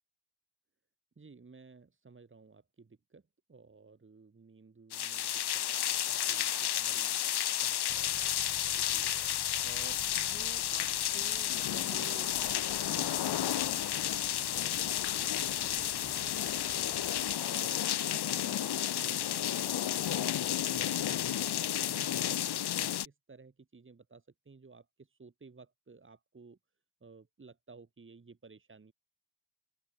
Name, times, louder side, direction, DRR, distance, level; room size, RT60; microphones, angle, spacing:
voice 1, 1.2-3.2 3.5-7.2 7.5-8.1 8.8-9.2 9.6-26.6 27.0-28.9, right 4 dB, 25° right, 5.0 m, -55 dB
sound 1, 4.9-23.1, left 11 dB, 60° left, 0.9 m, -32 dB
sound 2, 7.9-17.4, left 6 dB, 40° left, 2.5 m, -53 dB
open air
wide cardioid pair, 180°, 44 cm